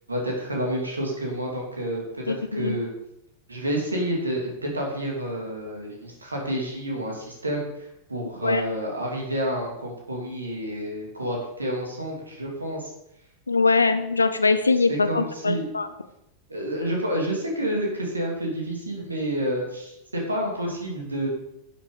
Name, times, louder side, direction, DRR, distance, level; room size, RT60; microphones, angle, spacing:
voice 1, 0.1-2.9 3.5-12.9 14.9-15.7 16.5-21.3, equal, 80° right, -1 dB, 2.8 m, -29 dB
voice 2, 2.3-2.8 8.4-8.7 13.5-15.9, left 4 dB, 80° left, 10 dB, 0.5 m, -22 dB
11.0 x 7.4 x 5.2 m, 0.84 s
figure-of-eight pair, 90°, 0 cm